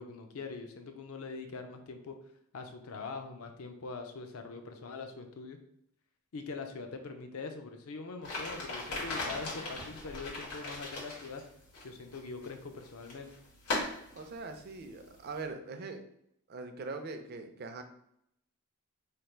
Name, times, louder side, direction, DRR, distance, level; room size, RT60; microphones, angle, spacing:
voice 1, 0.0-2.2 2.5-5.6 6.3-11.4 11.8-13.3, left 4 dB, 70° left, 6 dB, 0.5 m, -43 dB
sound 1, 8.2-15.4, left 2 dB, 90° left, 1.5 m, -40 dB
voice 2, 14.1-16.0 16.5-17.8, right 3 dB, 45° right, 6 dB, 0.4 m, -42 dB
3.3 x 2.4 x 4.4 m, 0.75 s
head